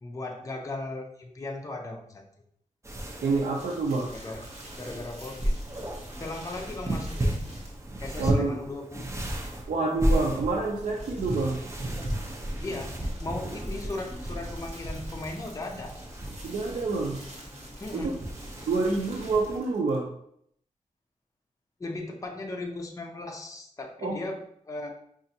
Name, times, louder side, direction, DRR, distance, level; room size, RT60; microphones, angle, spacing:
voice 1, 0.0-2.2 4.1-5.6 6.2-7.5 8.0-9.0 12.6-16.0 17.8-18.2 21.8-24.9, left 2 dB, 25° left, 2 dB, 0.5 m, -37 dB
sound 1, 2.8-19.6, right 1 dB, 20° right, 0.6 m, -33 dB
voice 2, 3.2-4.1 8.2-8.6 9.7-11.6 16.4-17.2 17.9-18.1 18.7-20.1 24.0-24.2, right 3 dB, 90° right, -2 dB, 0.5 m, -27 dB
sound 2, 3.5-8.0 10.5-20.1, right 1 dB, 55° right, 1.3 m, -48 dB
5.2 x 2.4 x 2.7 m, 0.68 s
wide cardioid pair, 100°, 14 cm